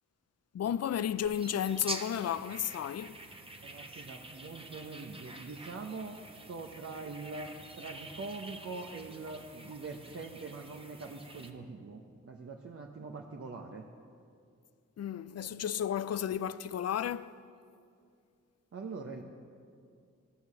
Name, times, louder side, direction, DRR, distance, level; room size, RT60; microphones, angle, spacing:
voice 1, 0.5-3.2 15.0-17.4, left 9 dB, 50° left, 0.5 m, -33 dB
sound 1, 1.2-11.5, right 2 dB, 15° right, 1.2 m, -47 dB
voice 2, 3.6-13.9 18.7-19.2, right 3 dB, 45° right, 0.9 m, -43 dB
14.5 x 6.3 x 7.2 m
cardioid pair, 45°, 33 cm